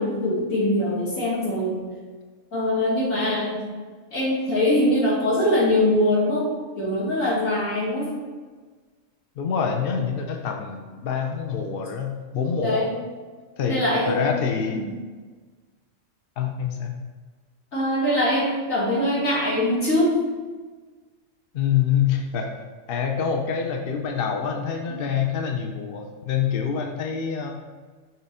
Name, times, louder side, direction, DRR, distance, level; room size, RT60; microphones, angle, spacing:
voice 1, 0.0-1.8 2.5-3.6 4.1-6.5 6.8-8.1 12.6-12.9 13.7-14.2 14.7-14.9 17.7-20.2, left 1 dB, 75° left, -7 dB, 2.8 m, -22 dB
voice 2, 9.4-12.8 13.6-13.8 14.1-14.8 16.4-17.0 21.5-22.5 22.9-27.6, left 7 dB, 50° left, 3 dB, 0.8 m, -26 dB
6.6 x 4.4 x 4.9 m, 1.4 s
omnidirectional pair, 1.4 m